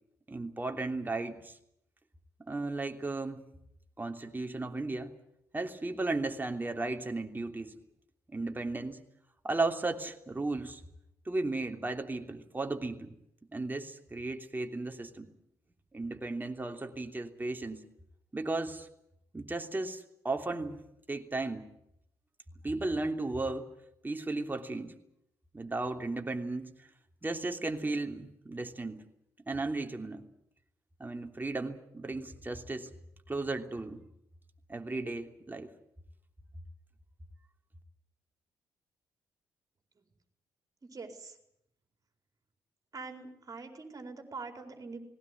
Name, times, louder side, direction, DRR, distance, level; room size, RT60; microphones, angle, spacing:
voice 1, 0.3-1.6 2.4-3.4 4.0-5.1 5.5-7.7 8.3-9.0 9.4-10.8 11.2-13.2 13.5-15.3 15.9-17.8 18.3-18.9 19.3-20.8 21.1-21.6 22.6-23.7 24.0-24.9 25.5-26.7 27.2-29.0 29.5-30.2 31.0-32.9 33.3-34.0 34.7-35.7, right 2 dB, 20° right, 4 dB, 3.2 m, -35 dB
voice 2, 40.8-41.4 42.9-45.0, right 4 dB, 40° right, 4 dB, 4.6 m, -44 dB
19.5 x 18.0 x 9.8 m, 0.77 s
hypercardioid pair, 45°, 9 cm